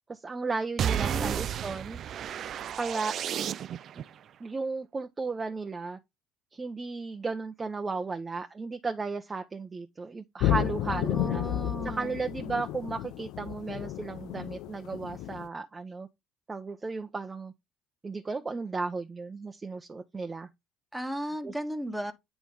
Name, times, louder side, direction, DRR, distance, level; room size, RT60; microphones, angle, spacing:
voice 1, 0.1-2.0 2.8-3.2 4.0-4.1 4.4-6.0 6.5-11.4 11.8-16.1 16.5-17.5 18.0-20.5 21.4-21.5, right 4 dB, 25° right, 0.7 m, -34 dB
sound 1, 0.8-4.0, right 9 dB, 55° right, 0.3 m, -32 dB
voice 2, 1.0-1.4 10.9-12.2 20.9-22.1, right 1 dB, 10° right, 1.2 m, -35 dB
sound 2, 10.4-15.5, left 13 dB, 70° left, 0.4 m, -32 dB
8.5 x 3.0 x 4.8 m
hypercardioid pair, 65°, 0 cm